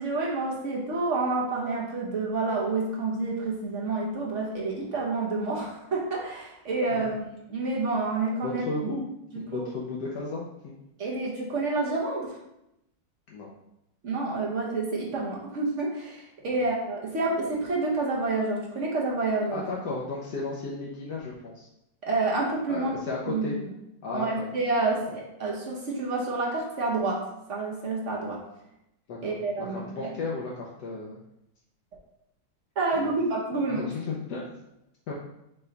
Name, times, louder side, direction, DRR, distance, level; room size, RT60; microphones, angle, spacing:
voice 1, 0.0-8.9 9.3-9.7 11.0-12.4 14.0-19.7 22.0-23.5 24.1-27.2 27.5-28.4 29.2-30.1 32.8-33.9, right 3 dB, 55° right, -3 dB, 0.9 m, -29 dB
voice 2, 8.4-9.0 9.3-10.7 13.3-13.5 16.5-16.6 19.5-21.7 22.7-23.5 24.0-24.3 29.1-31.2 32.9-33.1 33.5-34.5 35.1-35.2, left 3 dB, 75° left, -4 dB, 1.2 m, -34 dB
5.6 x 2.2 x 3.9 m, 0.86 s
omnidirectional pair, 1.9 m